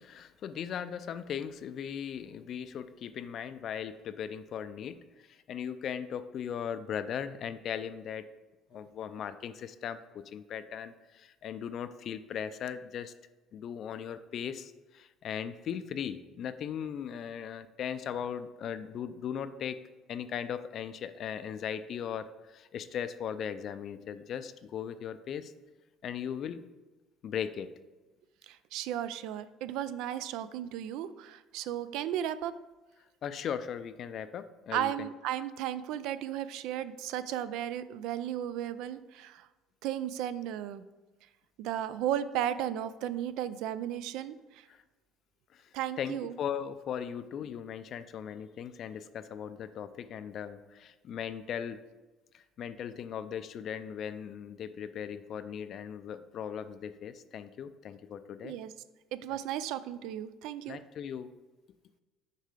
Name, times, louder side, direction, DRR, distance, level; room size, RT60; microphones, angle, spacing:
voice 1, 0.0-5.0 5.3-8.3 8.7-13.1 13.5-19.8 20.1-25.5 26.0-26.6 27.2-27.7 33.2-35.1 44.7-44.8 45.5-45.7 46.0-51.8 52.3-58.5 60.7-61.3, left 8 dB, 45° left, 12 dB, 0.4 m, -38 dB
voice 2, 28.5-32.6 34.7-39.5 39.8-40.8 41.6-44.4 45.7-46.4 58.4-58.7 59.1-60.8, right 11 dB, 75° right, 14 dB, 0.3 m, -35 dB
6.6 x 4.6 x 4.9 m, 1.2 s
cardioid pair, 145°, 0 cm